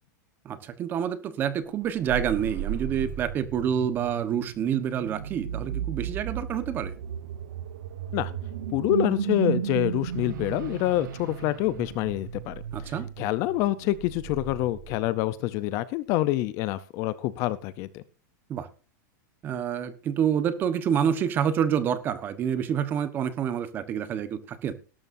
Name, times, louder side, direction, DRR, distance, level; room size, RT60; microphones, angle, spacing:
voice 1, 0.4-6.9 12.7-13.1 18.5-18.7 19.4-24.7, right 8 dB, 20° right, 12 dB, 1.1 m, -28 dB
sound 1, 1.8-15.3, right 9 dB, 80° right, 1.2 m, -34 dB
voice 2, 8.7-12.6 13.2-18.0, left 15 dB, 30° left, 15 dB, 0.6 m, -26 dB
18.5 x 12.5 x 2.6 m, 0.34 s
supercardioid pair, 175°, 10 cm